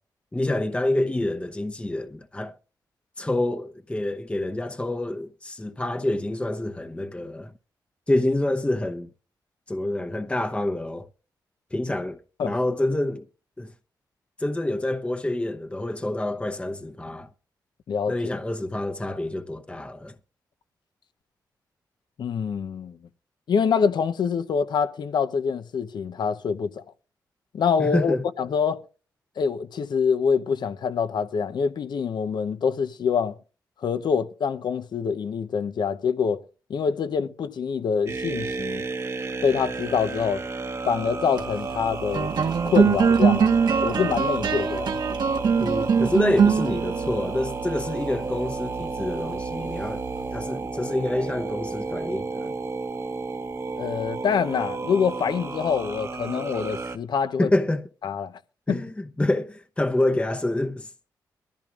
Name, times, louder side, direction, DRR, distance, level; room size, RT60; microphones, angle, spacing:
voice 1, 0.3-2.5 3.2-7.5 8.1-9.1 9.7-11.1 11.7-13.2 13.6-13.7 14.4-17.3 18.1-20.1 27.8-28.2 45.6-50.1 50.3-52.5 57.4-57.9 58.7-61.1, left 1 dB, 15° left, 0.9 m, -27 dB
voice 2, 22.2-23.0 23.5-26.8 27.5-28.8 29.4-33.3 33.8-36.4 36.7-38.8 39.4-40.4 40.9-42.3 42.6-43.5 43.8-44.9 53.8-57.5 58.0-58.4 58.7-58.8, left 6 dB, 70° left, 0.8 m, -25 dB
sound 1, 38.1-57.0, right 3 dB, 40° right, 1.2 m, -32 dB
sound 2, 41.2-50.8, right 6 dB, 70° right, 1.5 m, -24 dB
22.5 x 14.0 x 2.5 m
cardioid pair, 65°, 8 cm